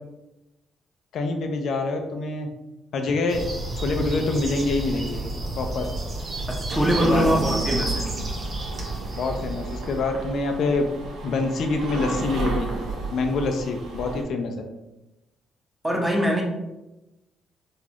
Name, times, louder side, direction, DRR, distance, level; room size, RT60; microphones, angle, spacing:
voice 1, 1.1-2.5 2.9-3.4 3.8-5.2 5.6-5.9 7.0-7.3 9.2-10.8 11.2-12.7 13.1-14.5, left 3 dB, 70° left, 4 dB, 0.4 m, -25 dB
sound 1, 3.3-10.0, right 2 dB, 40° right, 0.8 m, -31 dB
voice 2, 6.7-8.1 15.8-16.4, equal, 10° right, 0 dB, 0.8 m, -22 dB
sound 2, 6.7-14.2, right 3 dB, 85° right, 0.7 m, -32 dB
4.0 x 2.4 x 2.9 m, 0.98 s
cardioid pair, 90°, 0 cm